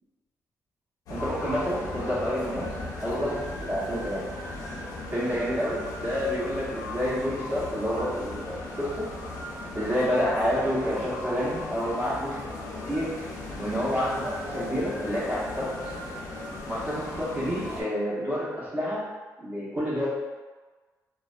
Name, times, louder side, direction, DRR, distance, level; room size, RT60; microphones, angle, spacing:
sound 1, 1.1-17.8, left 2 dB, 80° left, 0.5 m, -37 dB
voice 1, 1.1-2.7 3.0-4.3 5.1-9.0 9.7-12.4 12.9-13.1 13.6-15.7 16.7-19.1 19.4-20.1, equal, 25° right, -9 dB, 1.0 m, -29 dB
2.4 x 2.1 x 2.4 m, 1.3 s
cardioid pair, 90°, 6 cm